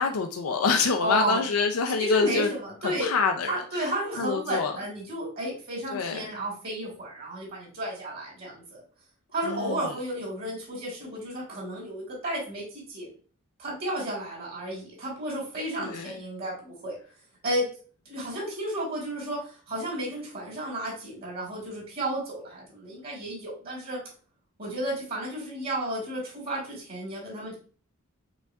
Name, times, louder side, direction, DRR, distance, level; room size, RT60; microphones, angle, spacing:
voice 1, 0.0-2.5 2.8-3.9 4.2-4.7 5.9-6.3 9.4-9.9 15.8-16.1, left 4 dB, 85° left, 5 dB, 0.5 m, -26 dB
voice 2, 1.0-1.4 2.0-3.1 3.5-8.8 9.3-13.1 13.6-16.9 17.4-17.7 18.1-24.0 24.6-27.5, right 1 dB, 45° right, -2 dB, 2.0 m, -32 dB
5.3 x 3.5 x 2.3 m, 0.39 s
head